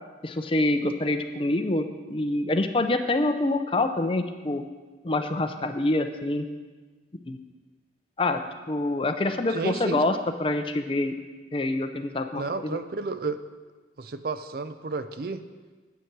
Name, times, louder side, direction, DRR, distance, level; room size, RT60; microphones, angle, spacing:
voice 1, 0.2-4.6 5.0-6.5 7.3-7.4 8.2-8.4 8.7-11.1 11.5-12.7, left 2 dB, 30° left, 7 dB, 0.5 m, -26 dB
voice 2, 9.5-10.0 12.4-13.4 14.0-15.4, right 4 dB, 55° right, 11 dB, 0.5 m, -31 dB
9.1 x 8.1 x 4.6 m, 1.3 s
head